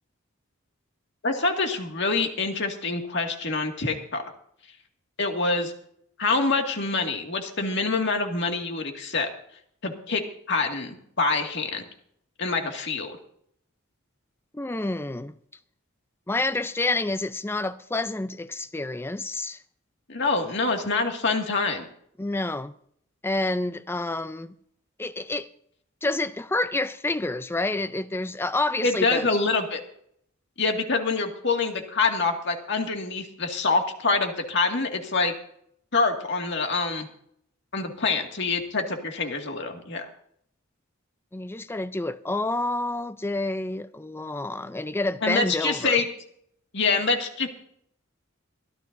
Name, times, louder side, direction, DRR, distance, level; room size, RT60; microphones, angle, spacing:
voice 1, 1.2-4.2 5.2-5.7 6.2-9.3 9.8-10.2 10.5-11.9 12.4-13.2 20.1-21.8 28.8-29.8 30.6-35.3 35.9-37.1 37.7-40.1 45.2-46.1 46.7-47.5, left 3 dB, 60° left, 2.1 m, -25 dB
voice 2, 14.5-15.3 16.3-19.6 22.2-22.7 23.2-24.6 25.0-25.5 26.0-29.3 41.3-46.0, left 2 dB, 10° left, 0.5 m, -28 dB
22.5 x 14.0 x 2.7 m
head